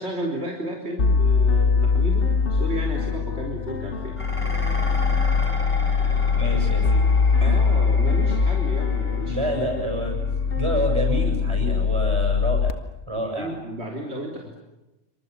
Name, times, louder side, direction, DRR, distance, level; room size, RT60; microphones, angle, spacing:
voice 1, 0.0-4.2 6.1-6.3 7.3-9.5 13.2-14.6, right 1 dB, 70° right, 0 dB, 4.1 m, -33 dB
sound 1, 1.0-12.7, left 5 dB, 80° left, 1.7 m, -22 dB
Dishes pots and pans, 4.2-13.0, left 1 dB, 25° left, 5.5 m, -37 dB
voice 2, 6.3-7.0 7.4-7.6 9.3-10.1 10.6-12.8 13.1-13.5, equal, 25° right, 3 dB, 7.9 m, -28 dB
28.0 x 26.0 x 7.2 m, 0.98 s
omnidirectional pair, 1.2 m